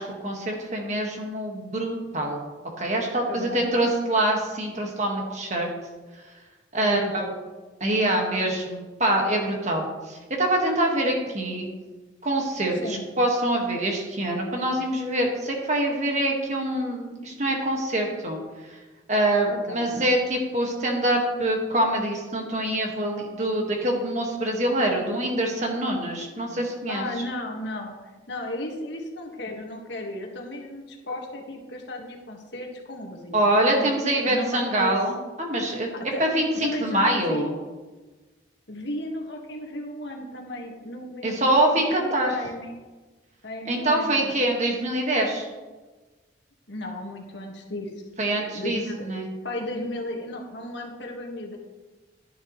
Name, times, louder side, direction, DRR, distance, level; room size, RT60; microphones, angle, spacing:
voice 1, 0.0-2.4 2.8-5.7 6.7-7.2 7.8-11.7 12.2-18.4 19.1-27.1 33.3-35.9 36.2-37.5 41.2-42.3 43.7-45.5 48.2-49.3, right 1 dB, 35° right, 1 dB, 1.7 m, -25 dB
voice 2, 3.3-3.7 6.8-7.4 12.8-13.1 19.5-19.9 26.9-28.0 28.3-33.9 34.3-35.0 35.9-36.2 36.6-37.5 38.7-42.7 43.4-44.3 46.7-47.9 48.3-49.0 49.4-51.6, left 1 dB, 65° left, 1 dB, 1.8 m, -34 dB
11.5 x 10.5 x 3.2 m, 1.3 s
head